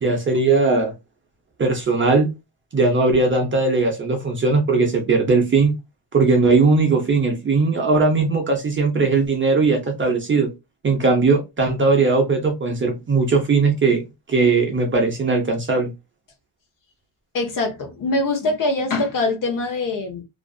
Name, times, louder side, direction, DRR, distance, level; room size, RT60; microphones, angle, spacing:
voice 1, 0.0-0.9 1.6-2.3 2.7-5.7 6.1-10.5 10.8-14.0 14.3-15.9, right 3 dB, 25° right, 0.6 m, -19 dB
voice 2, 17.3-20.2, left 2 dB, 45° left, 0.9 m, -23 dB
2.5 x 2.3 x 2.3 m
cardioid pair, 135°, 47 cm